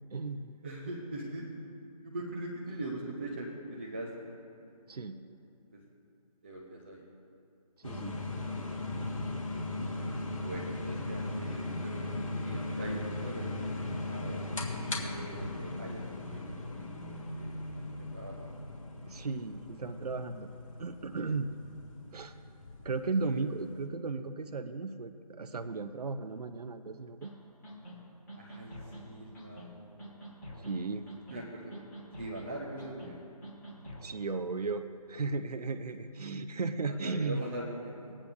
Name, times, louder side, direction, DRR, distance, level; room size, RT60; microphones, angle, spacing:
voice 1, 0.1-0.6 4.9-5.2 7.8-8.1 19.1-20.5 20.8-21.5 22.1-22.3 22.8-27.3 30.6-31.1 34.0-37.4, right 4 dB, 75° right, 8 dB, 0.6 m, -35 dB
voice 2, 0.6-1.5 2.0-4.3 4.9-5.2 5.7-5.8 6.4-7.1 9.9-12.0 12.4-14.4 15.0-17.6 18.0-18.5 28.4-30.1 31.3-31.8 32.2-33.2 36.8-38.1, right 1 dB, 15° right, -4 dB, 0.6 m, -42 dB
sound 1, 7.8-23.8, left 2 dB, 55° left, 1.5 m, -38 dB
sound 2, 27.2-27.3 27.6-28.0 28.3-29.0 29.3-29.7 30.0-30.7 31.1-31.4 31.7-32.5 32.8-33.1 33.4-34.1, right 1 dB, 30° left, 2.8 m, -46 dB
21.5 x 8.6 x 2.6 m, 2.6 s
figure-of-eight pair, 165°, 20 cm